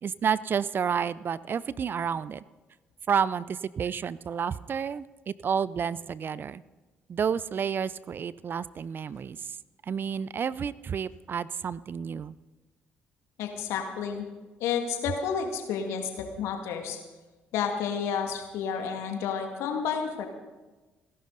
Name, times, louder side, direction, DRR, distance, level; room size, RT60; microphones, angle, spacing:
voice 1, 0.0-2.4 3.1-6.6 7.1-9.6 9.8-12.4, right 7 dB, 45° right, 19 dB, 0.5 m, -30 dB
voice 2, 13.4-14.3 14.6-17.0 17.5-20.3, left 7 dB, 70° left, 4 dB, 2.2 m, -30 dB
30.0 x 11.5 x 4.0 m, 1.2 s
hypercardioid pair, 50°, 5 cm